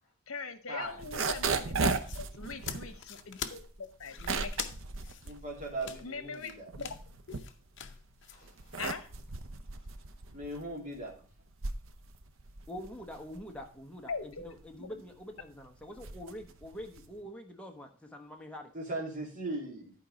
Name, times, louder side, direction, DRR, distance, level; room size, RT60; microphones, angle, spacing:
voice 1, 0.3-1.9 2.2-4.5 5.8-6.5 6.8-6.9 7.3-7.4 8.8-9.1 14.1-15.0, left 5 dB, 75° left, 1.0 m, -41 dB
sound 1, 0.9-6.2 6.5-8.0 8.4-17.2, right 4 dB, 65° right, 0.8 m, -36 dB
sound 2, 2.0-8.4, left 8 dB, 60° left, 0.7 m, -44 dB
voice 2, 2.4-3.0 8.3-8.9 9.5-10.9, right 2 dB, 45° left, 3.5 m, -61 dB
voice 3, 5.2-6.6 10.3-11.1 18.7-19.9, right 2 dB, 40° right, 2.6 m, -38 dB
voice 4, 12.7-18.7, equal, 5° left, 1.1 m, -45 dB
11.0 x 4.6 x 5.2 m
head